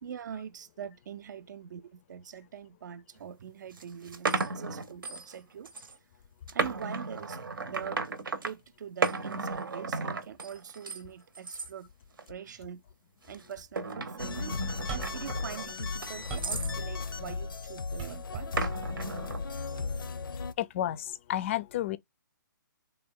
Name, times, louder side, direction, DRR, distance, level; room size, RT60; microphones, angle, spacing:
voice 1, 0.0-5.9 6.5-7.4 7.7-8.0 8.4-11.9 12.3-12.8 13.3-14.6 15.1-18.7, right 8 dB, 60° right, 0.5 m, -43 dB
sound 1, 3.2-3.3 3.8-5.4 5.7-6.0 6.5-8.5 9.0-11.0 11.3-11.7 12.2-12.6 13.3-16.8 18.6-19.4, right 4 dB, 85° right, 0.8 m, -34 dB
sound 2, 14.2-20.5, left 4 dB, 85° left, 0.6 m, -36 dB
sound 3, 14.9-15.3 15.8-16.6 18.0-18.5 19.8-19.9, right 6 dB, 25° right, 0.8 m, -39 dB
voice 2, 20.6-21.0 21.3-22.0, left 12 dB, 35° left, 0.4 m, -30 dB
3.8 x 2.3 x 3.6 m
hypercardioid pair, 150°, 11 cm